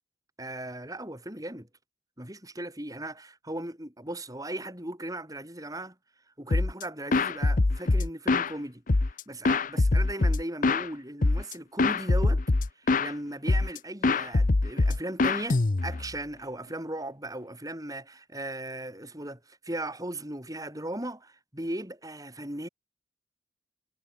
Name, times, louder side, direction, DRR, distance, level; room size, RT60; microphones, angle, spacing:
voice 1, 0.4-1.7 2.2-5.9 6.4-8.8 9.3-12.4 12.8-22.7, right 1 dB, 20° right, 6.4 m, -37 dB
sound 1, 6.5-6.8 7.1-8.5 8.9-10.9 11.2-11.5 11.8-13.1 13.5-13.8 14.0-16.1, left 3 dB, 45° left, 0.7 m, -24 dB
head